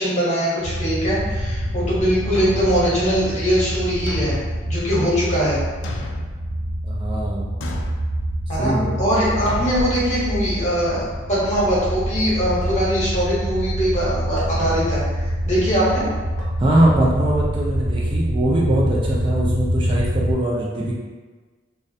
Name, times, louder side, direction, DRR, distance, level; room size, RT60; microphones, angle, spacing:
voice 1, 0.0-4.4 4.7-5.6 8.5-15.0 15.5-16.0, equal, 40° left, -7 dB, 0.8 m, -21 dB
sound 1, 0.6-20.3, equal, 65° right, 0.9 m, -26 dB
Thump thud, 2.3-3.0 4.1-4.6 5.8-6.4 7.6-8.0 9.5-9.8, left 2 dB, 80° left, 0.3 m, -32 dB
voice 2, 6.8-7.5 8.6-9.0 16.6-20.9, right 1 dB, 25° right, -4 dB, 0.3 m, -21 dB
sound 2, 9.5-11.2 12.6-12.7 14.4-14.5 16.4-16.5 17.9-18.0, equal, 5° left, 0.7 m, -35 dB
2.3 x 2.1 x 2.6 m, 1.4 s
head